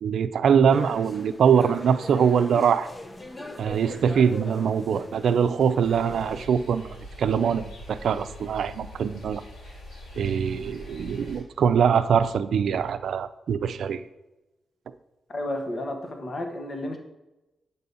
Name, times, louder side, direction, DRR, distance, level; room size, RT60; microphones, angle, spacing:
voice 1, 0.0-2.9 3.6-9.4 10.2-14.0, right 7 dB, 75° right, 10 dB, 0.5 m, -23 dB
sound 1, 0.7-6.5, left 2 dB, 20° left, 0.8 m, -41 dB
sound 2, 5.8-11.4, equal, 90° left, 3.3 m, -43 dB
voice 2, 15.3-17.0, left 1 dB, 45° left, 4 dB, 1.3 m, -32 dB
8.4 x 4.0 x 6.9 m, 1.0 s
cardioid pair, 100°, 0 cm